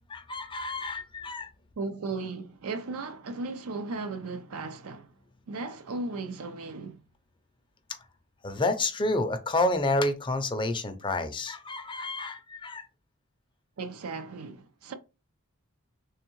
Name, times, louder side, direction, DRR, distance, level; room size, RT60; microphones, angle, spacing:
voice 1, 0.1-1.5 7.9-8.0 8.4-12.9, left 2 dB, 20° left, 0.5 m, -29 dB
voice 2, 1.8-5.1 5.5-7.0 13.8-14.9, right 3 dB, 75° right, 0.5 m, -36 dB
3.5 x 3.4 x 3.0 m
head